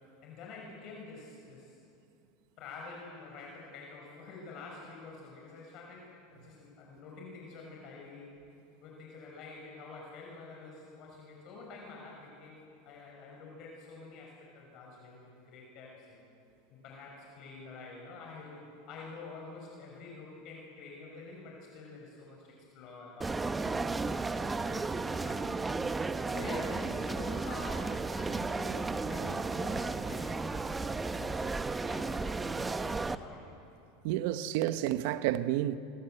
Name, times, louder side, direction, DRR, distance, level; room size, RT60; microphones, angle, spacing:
voice 1, 0.2-1.8 2.6-8.3 8.8-16.2 16.7-25.5 26.3-31.5 31.9-33.5, left 3 dB, 45° left, 6.1 m, -47 dB
sound 1, 23.2-33.2, right 3 dB, 10° right, 0.8 m, -34 dB
voice 2, 34.0-35.8, right 13 dB, 60° right, 1.0 m, -30 dB
28.0 x 25.5 x 8.0 m
supercardioid pair, 140°, 0 cm